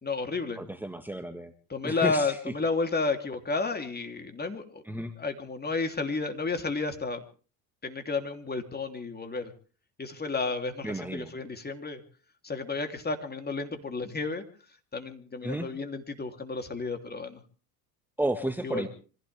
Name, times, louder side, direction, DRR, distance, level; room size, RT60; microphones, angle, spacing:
voice 1, 0.0-0.6 1.7-7.2 7.8-9.5 10.0-12.0 12.4-14.4 14.9-17.4 18.6-18.9, left 4 dB, 20° left, 6 dB, 3.2 m, -32 dB
voice 2, 0.6-1.5 1.8-2.4 4.9-5.1 10.8-11.3 15.4-15.7 18.2-18.9, right 1 dB, 5° right, 6 dB, 1.7 m, -32 dB
25.5 x 16.0 x 3.5 m, 0.38 s
hypercardioid pair, 80°, 44 cm